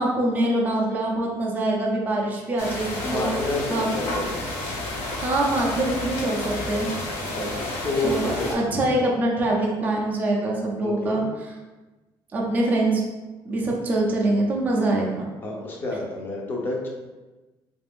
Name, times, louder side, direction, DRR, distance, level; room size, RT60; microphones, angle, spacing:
voice 1, 0.0-3.3 3.7-3.9 5.2-6.9 8.0-11.5 12.3-13.0 13.4-15.1, right 1 dB, 20° right, -2 dB, 0.5 m, -24 dB
sound 1, 2.6-8.5, left 1 dB, 85° left, 1.1 m, -31 dB
voice 2, 3.0-4.4 7.3-7.5 7.8-8.5 10.8-11.2 15.4-16.9, left 2 dB, 20° left, -1 dB, 0.6 m, -29 dB
3.5 x 2.5 x 3.4 m, 1.2 s
cardioid pair, 180°, 9 cm